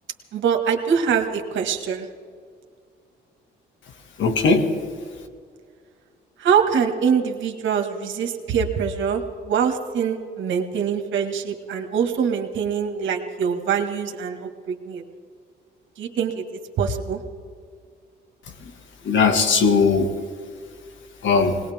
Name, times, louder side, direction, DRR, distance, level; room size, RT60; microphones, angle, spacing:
voice 1, 0.3-2.1 6.4-15.0 16.0-16.4 16.8-17.2, right 7 dB, 70° right, 4 dB, 1.8 m, -24 dB
voice 2, 4.2-4.8 19.0-20.1 21.2-21.6, left 4 dB, 70° left, 5 dB, 2.0 m, -18 dB
21.0 x 19.5 x 3.6 m, 2.1 s
cardioid pair, 90°, 20 cm